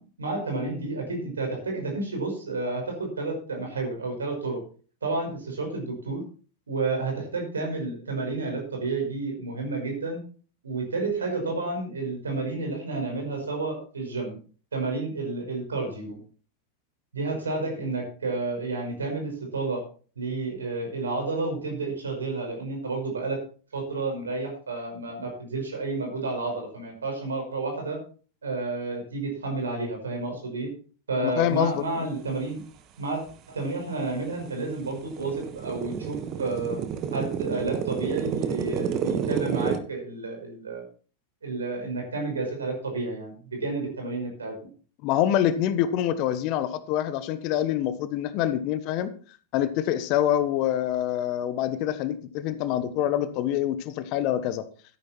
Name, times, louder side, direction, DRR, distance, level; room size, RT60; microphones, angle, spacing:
voice 1, 0.0-4.6 5.0-6.2 6.7-10.2 10.6-14.4 14.7-16.2 17.1-19.8 20.2-23.4 23.7-28.0 28.4-30.7 31.1-32.6 33.0-33.2 33.5-36.8 37.1-40.8 41.4-44.6, right 3 dB, 70° right, 2 dB, 5.5 m, -31 dB
voice 2, 31.2-32.1 45.0-49.1 49.5-54.6, left 11 dB, 40° left, 13 dB, 1.3 m, -26 dB
sound 1, 33.3-33.4 33.9-39.8, right 8 dB, 35° right, 1.5 m, -30 dB
13.0 x 10.5 x 4.5 m, 0.40 s
figure-of-eight pair, 90°, 0 cm